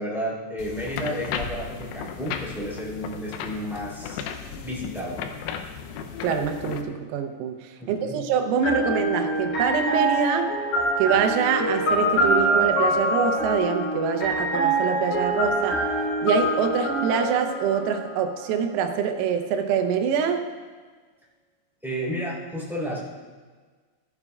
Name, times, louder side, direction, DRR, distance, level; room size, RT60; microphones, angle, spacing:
voice 1, 0.0-5.2 7.8-8.2 21.8-23.0, equal, ahead, -7 dB, 2.9 m, -32 dB
sound 1, 0.6-6.8, left 7 dB, 90° left, 3.5 m, -35 dB
voice 2, 6.2-10.5 11.0-15.8 16.2-20.5, right 6 dB, 85° right, 6 dB, 3.6 m, -25 dB
sound 2, 8.6-18.4, right 1 dB, 50° left, 5.2 m, -25 dB
18.0 x 12.0 x 2.4 m, 1.4 s
omnidirectional pair, 6.0 m